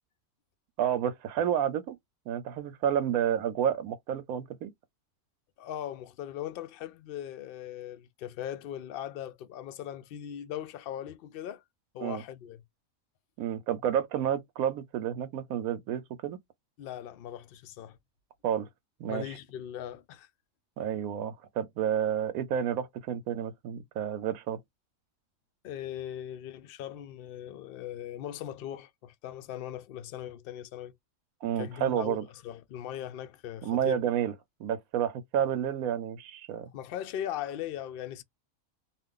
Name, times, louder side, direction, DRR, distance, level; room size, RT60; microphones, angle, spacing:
voice 1, 0.8-2.0 2.3-4.7 12.0-12.2 13.4-16.4 18.4-18.7 19.0-19.3 20.8-24.6 31.4-32.3 33.6-34.3 34.6-36.7, right 9 dB, 85° right, 1.0 m, -30 dB
voice 2, 5.6-11.6 11.9-12.6 16.8-18.0 19.1-20.3 25.6-30.9 31.6-32.2 32.4-34.0 36.7-38.2, left 11 dB, 70° left, 0.5 m, -39 dB
2.4 x 2.4 x 3.6 m
omnidirectional pair, 1.5 m